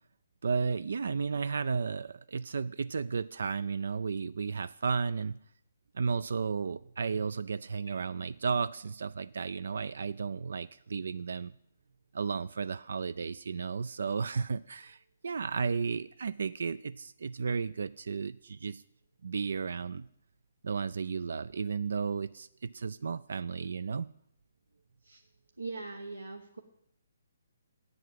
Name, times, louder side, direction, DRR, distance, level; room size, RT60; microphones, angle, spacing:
voice 1, 0.4-5.4 5.9-11.5 12.1-18.8 19.2-20.0 20.6-24.1, right 5 dB, 65° right, 16 dB, 0.3 m, -33 dB
voice 2, 25.6-26.6, right 3 dB, 90° right, 3 dB, 1.0 m, -41 dB
8.2 x 7.8 x 7.5 m, 0.73 s
figure-of-eight pair, 140°, 0 cm